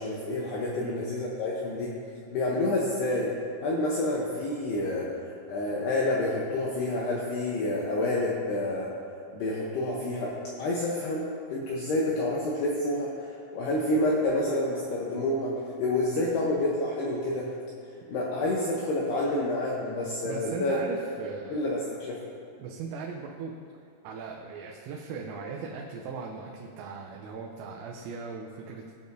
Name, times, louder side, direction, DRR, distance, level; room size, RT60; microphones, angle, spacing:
voice 1, 0.0-1.9 2.3-3.3 3.6-5.1 5.5-8.9 9.3-15.5 15.8-17.5 18.1-20.8 21.5-22.2, left 1 dB, 80° left, -4 dB, 2.3 m, -28 dB
voice 2, 20.2-21.6 22.6-23.5 24.0-28.9, right 5 dB, 85° right, 0 dB, 3.3 m, -38 dB
20.0 x 6.9 x 2.6 m, 2.4 s
omnidirectional pair, 5.9 m